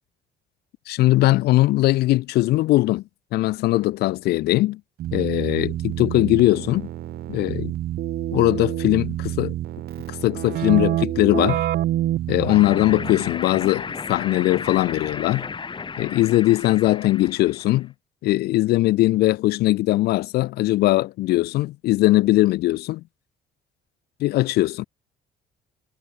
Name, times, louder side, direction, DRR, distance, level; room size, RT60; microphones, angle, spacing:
voice 1, 0.9-3.0 3.3-4.8 5.1-6.9 7.3-7.7 8.3-9.6 10.1-11.6 12.3-15.5 16.0-17.9 18.2-23.0 24.2-24.9, left 17 dB, 70° left, 0.5 m, -20 dB
Keyboard (musical), 5.0-13.4, right 13 dB, 70° right, 3.2 m, -27 dB
sound 1, 12.4-17.8, left 5 dB, 30° left, 3.4 m, -34 dB
cardioid pair, 110°, 17 cm